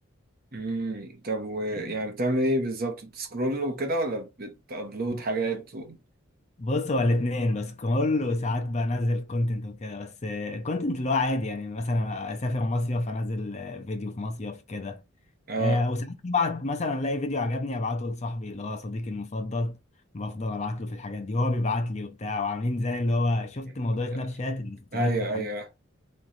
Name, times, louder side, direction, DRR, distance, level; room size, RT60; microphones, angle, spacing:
voice 1, 0.5-6.0 15.5-15.8 24.1-24.3 24.9-25.7, right 1 dB, 45° right, 0.9 m, -29 dB
voice 2, 6.6-15.0 15.6-19.8 20.1-25.5, left 2 dB, 30° left, 0.6 m, -28 dB
3.2 x 3.0 x 4.1 m
head